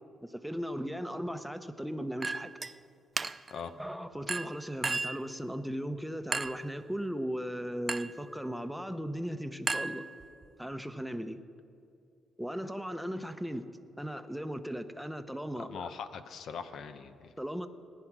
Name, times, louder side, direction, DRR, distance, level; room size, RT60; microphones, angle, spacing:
voice 1, 0.2-2.5 3.8-10.1 10.6-11.4 12.4-13.6 14.0-15.9 17.4-17.7, equal, ahead, 8 dB, 0.9 m, -37 dB
Chink clink, 2.2-2.7 3.2-3.6 4.3-5.3 6.3-6.7 7.9-8.2 9.7-10.5, right 3 dB, 25° right, 0.4 m, -34 dB
voice 2, 15.5-17.3, left 6 dB, 70° left, 10 dB, 0.9 m, -41 dB
18.5 x 10.0 x 6.2 m, 2.4 s
cardioid pair, 90°, 0 cm